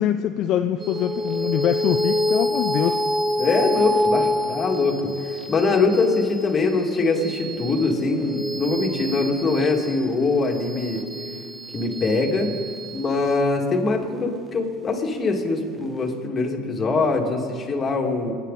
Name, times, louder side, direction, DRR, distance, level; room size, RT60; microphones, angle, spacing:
voice 1, 0.0-3.0, left 10 dB, 55° left, 7 dB, 0.5 m, -23 dB
sound 1, 0.8-15.6, left 1 dB, 15° right, 0.9 m, -28 dB
voice 2, 3.4-11.0 11.7-12.5 12.9-18.3, left 3 dB, 30° left, 0 dB, 2.5 m, -23 dB
24.5 x 9.8 x 4.2 m, 2.2 s
supercardioid pair, 100°, 0 cm